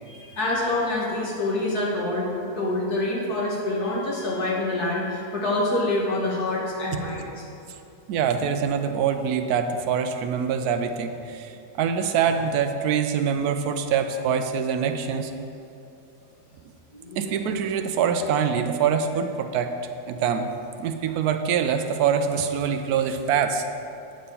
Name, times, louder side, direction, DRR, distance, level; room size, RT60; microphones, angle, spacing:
voice 1, 0.1-7.3 16.9-17.5, left 2 dB, 85° left, -4 dB, 2.1 m, -26 dB
voice 2, 8.1-15.3 17.2-19.8 20.1-23.6, right 7 dB, 85° right, 7 dB, 1.1 m, -24 dB
8.9 x 4.3 x 6.9 m, 2.6 s
omnidirectional pair, 1.6 m